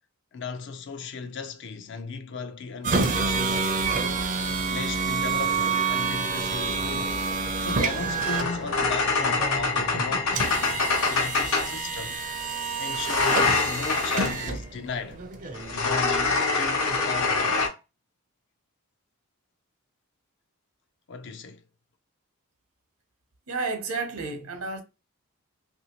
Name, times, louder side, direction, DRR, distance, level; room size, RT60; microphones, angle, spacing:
voice 1, 0.3-3.8 4.7-7.2 7.6-12.2 12.8-15.2 15.7-17.6 21.1-21.6, left 4 dB, 55° left, 0.4 m, -36 dB
sound 1, 2.8-17.5, right 4 dB, 35° right, 0.4 m, -29 dB
sound 2, 2.9-5.1 6.3-11.8 12.9-14.4 15.5-17.7, left 4 dB, 70° left, 0.9 m, -26 dB
voice 2, 23.5-24.8, right 3 dB, 75° right, 0.8 m, -31 dB
3.0 x 2.6 x 2.9 m
head